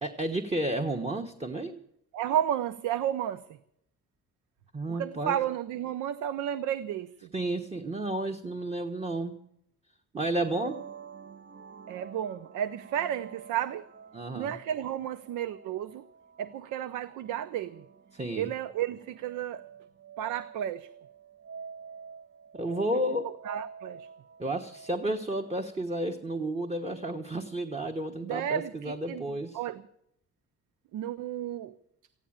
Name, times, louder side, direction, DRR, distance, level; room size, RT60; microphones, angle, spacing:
voice 1, 0.0-1.8 4.7-5.4 7.3-9.4 10.1-10.8 14.1-14.6 18.1-18.5 22.5-23.4 24.4-29.6, right 1 dB, 20° right, 1.2 m, -32 dB
voice 2, 2.1-3.4 4.9-7.3 11.9-13.9 14.3-16.0 16.4-17.8 18.4-19.6 20.2-20.9 22.9-23.0 23.4-24.1 28.2-29.2 29.5-29.8 30.9-31.8, right 10 dB, 90° right, 0.7 m, -32 dB
sound 1, 10.3-25.9, right 6 dB, 40° right, 0.8 m, -48 dB
15.0 x 10.0 x 8.8 m
cardioid pair, 90°, 30 cm